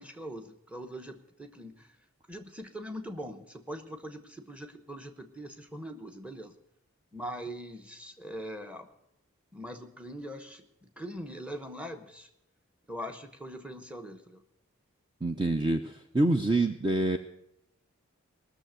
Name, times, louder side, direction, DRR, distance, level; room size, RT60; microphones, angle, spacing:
voice 1, 0.0-2.0 2.3-6.6 7.1-8.9 9.5-12.3 12.9-14.4, equal, 5° right, 6 dB, 0.9 m, -42 dB
voice 2, 15.2-17.2, right 2 dB, 20° right, 6 dB, 0.5 m, -26 dB
18.5 x 6.8 x 7.9 m, 0.81 s
head